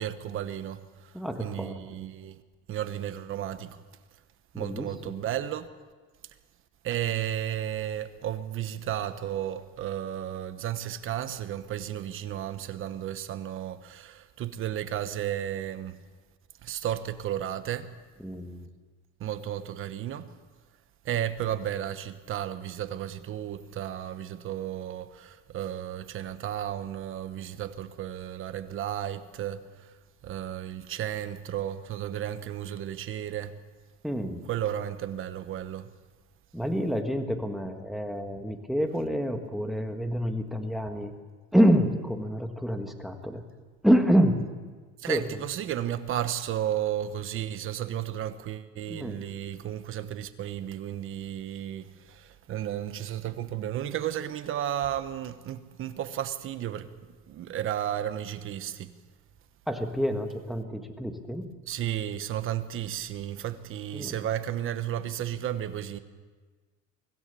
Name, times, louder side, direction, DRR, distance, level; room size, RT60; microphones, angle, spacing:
voice 1, 0.0-1.1 1.4-2.4 2.7-3.8 4.6-5.7 6.8-16.0 16.6-17.9 19.2-20.4 21.0-29.9 30.2-33.5 34.5-35.9 45.0-56.9 57.3-58.9 61.7-66.0, right 11 dB, 45° right, 1.2 m, -33 dB
voice 2, 1.1-1.8 4.5-5.2 18.2-18.7 34.0-34.4 36.5-41.1 41.5-43.4 43.8-44.6 45.1-45.4 48.9-49.2 59.7-61.5 63.9-64.1, equal, ahead, 1.6 m, -27 dB
24.5 x 16.0 x 7.0 m
cardioid pair, 155°, 30 cm